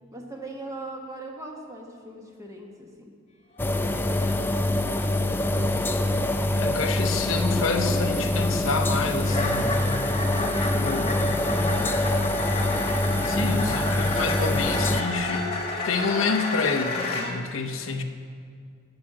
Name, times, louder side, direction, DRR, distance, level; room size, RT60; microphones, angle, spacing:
voice 1, 0.1-3.1 3.6-6.2 10.3-12.3, right 1 dB, 15° right, 0 dB, 1.2 m, -41 dB
sound 1, 3.6-3.8 4.1-4.5 4.8-5.1 5.5-5.7 6.1-6.4 7.0-7.2 7.5-7.7 9.2-17.3, left 2 dB, 30° left, 1.4 m, -31 dB
sound 2, 3.6-15.0, left 1 dB, 10° left, 0.4 m, -25 dB
voice 2, 6.5-9.8 10.8-11.2 13.2-15.5 15.8-18.0, left 4 dB, 70° left, 6 dB, 0.7 m, -28 dB
9.5 x 6.3 x 7.3 m, 2.1 s
head